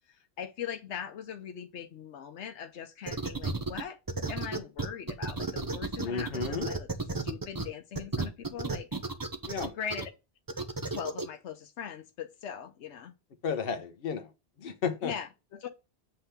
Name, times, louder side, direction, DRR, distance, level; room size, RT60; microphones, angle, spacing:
voice 1, 0.1-4.0 4.3-6.9 7.2-8.9 9.7-10.1 10.9-13.1 15.0-15.7, left 8 dB, 85° left, 1.0 m, -40 dB
sound 1, 3.1-3.8 4.1-7.6 8.0-10.0 10.5-11.2, right 3 dB, 20° right, 0.7 m, -32 dB
voice 2, 6.0-6.7 9.5-9.7 13.4-14.3 14.6-15.1, left 6 dB, 60° left, 1.1 m, -33 dB
7.9 x 3.4 x 5.7 m
omnidirectional pair, 1.1 m